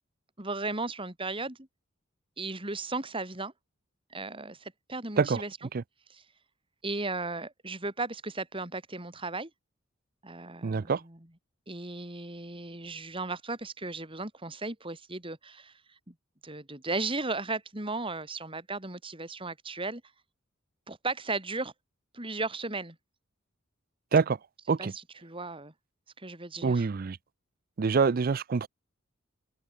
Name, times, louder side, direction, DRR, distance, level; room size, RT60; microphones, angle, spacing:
voice 1, 0.4-1.7 2.4-3.5 4.1-5.6 6.1-6.2 6.8-9.5 10.2-11.3 11.7-15.8 16.1-16.2 16.4-20.0 20.9-21.7 22.1-23.0 24.8-25.7 26.2-26.9, right 3 dB, 25° right, 3.4 m, -36 dB
voice 2, 10.6-11.0 24.1-24.4 24.7-24.9 26.6-27.2 27.8-28.7, right 5 dB, 45° right, 0.4 m, -25 dB
open air
head